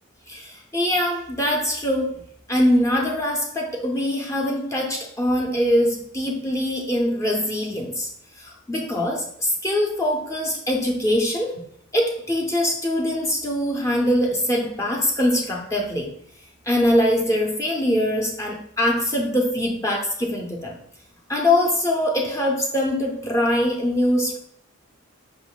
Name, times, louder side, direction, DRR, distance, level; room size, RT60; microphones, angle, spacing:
voice 1, 0.3-2.2 2.5-8.1 8.4-11.6 11.9-16.1 16.7-20.8 21.3-24.4, left 1 dB, 15° left, -1 dB, 0.6 m, -23 dB
5.2 x 2.5 x 3.8 m, 0.65 s
head